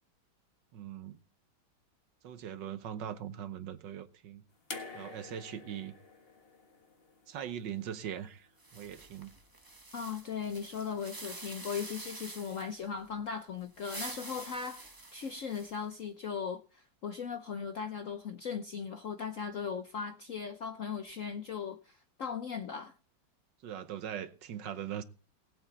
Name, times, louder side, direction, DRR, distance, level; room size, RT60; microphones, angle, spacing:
voice 1, 0.7-1.2 2.2-4.4 4.9-5.9 7.3-9.3 23.6-25.0, right 9 dB, 65° right, 1.5 m, -41 dB
sound 1, 4.7-7.9 9.1-9.2, left 3 dB, 30° left, 1.6 m, -47 dB
sound 2, 8.6-12.8 13.6-15.9, right 2 dB, 20° right, 0.5 m, -47 dB
voice 2, 9.9-22.9, left 6 dB, 60° left, 0.8 m, -38 dB
19.0 x 8.3 x 4.1 m
omnidirectional pair, 2.2 m